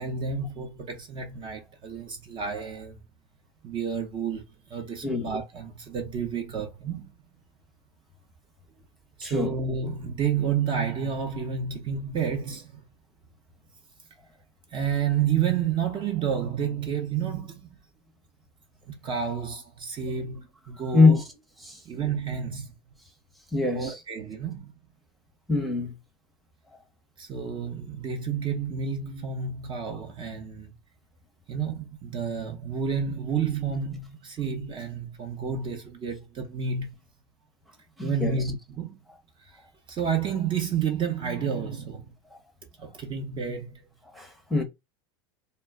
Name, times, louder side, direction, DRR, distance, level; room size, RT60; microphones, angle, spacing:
voice 1, 0.0-3.0 3.6-4.4 4.7-7.1 9.2-12.8 14.7-17.7 18.9-21.2 21.8-22.7 23.7-24.7 27.2-30.7 31.5-37.0 38.0-39.0 39.4-39.5 39.9-42.1 42.8-43.8, right 7 dB, 35° right, 0.7 m, -30 dB
voice 2, 9.2-9.6 20.0-20.1 20.9-21.2 21.6-21.8 23.5-24.0 25.5-25.9 38.0-38.4 42.3-42.4 44.1-44.6, left 3 dB, ahead, 0.8 m, -23 dB
2.2 x 2.1 x 3.4 m
hypercardioid pair, 105°, 14 cm